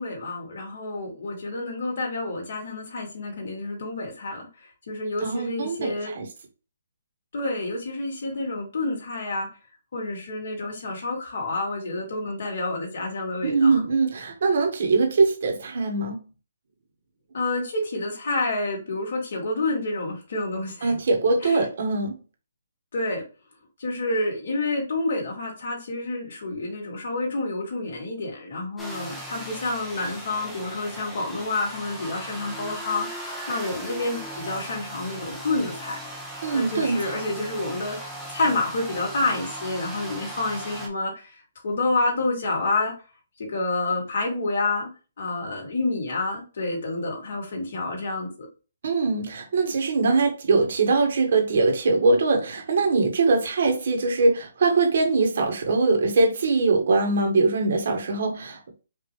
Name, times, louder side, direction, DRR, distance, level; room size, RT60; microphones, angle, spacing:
voice 1, 0.0-6.1 7.3-9.5 9.9-13.8 17.3-21.0 21.4-21.7 22.9-23.2 23.8-36.0 36.5-38.0 38.3-41.4 41.6-42.9 43.4-48.5, left 2 dB, 60° left, 2.3 m, -29 dB
voice 2, 5.2-6.2 13.4-16.2 20.8-22.1 36.4-37.0 48.8-58.7, right 3 dB, 60° right, 1.6 m, -22 dB
sound 1, 28.8-40.9, right 1 dB, ahead, 0.9 m, -37 dB
5.1 x 2.9 x 3.2 m
hypercardioid pair, 165°, 0 cm